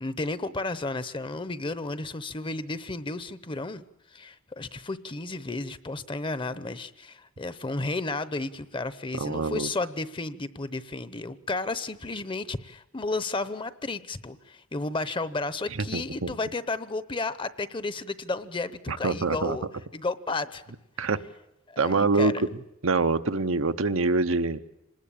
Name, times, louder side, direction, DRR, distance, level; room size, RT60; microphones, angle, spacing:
voice 1, 0.0-3.8 4.1-19.7 19.9-20.6 21.7-22.4, left 3 dB, 25° left, 15 dB, 0.8 m, -33 dB
voice 2, 9.2-9.7 15.8-16.3 18.9-19.6 21.0-21.2 21.8-22.3 22.8-24.6, right 3 dB, 85° right, 9 dB, 1.0 m, -25 dB
26.0 x 20.0 x 8.7 m, 0.88 s
head